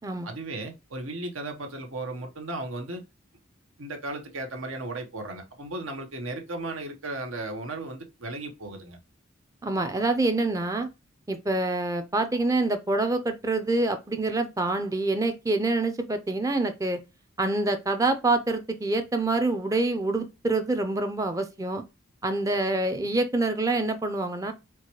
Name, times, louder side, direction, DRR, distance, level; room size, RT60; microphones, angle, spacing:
voice 1, 0.2-3.0 3.8-9.0, right 2 dB, 85° right, 0.9 m, -35 dB
voice 2, 9.6-10.9 11.3-17.0 17.4-21.8 22.2-24.5, right 2 dB, 15° right, 0.4 m, -26 dB
4.5 x 2.2 x 2.9 m
head